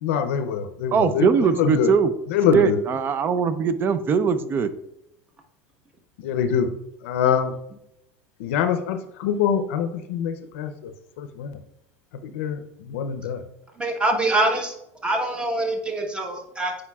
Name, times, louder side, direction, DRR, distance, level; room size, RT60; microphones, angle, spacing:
voice 1, 0.0-1.3 1.6-1.9 2.3-2.8 6.2-6.7 7.0-7.5 8.4-10.9 11.2-11.6 12.2-13.4, left 7 dB, 85° left, 8 dB, 0.6 m, -24 dB
voice 2, 0.9-2.1 2.5-4.7, right 6 dB, 30° right, 13 dB, 0.4 m, -21 dB
voice 3, 13.8-14.7 15.0-16.8, right 2 dB, 15° right, 2 dB, 1.1 m, -24 dB
8.4 x 4.9 x 2.3 m, 0.82 s
supercardioid pair, 130°, 7 cm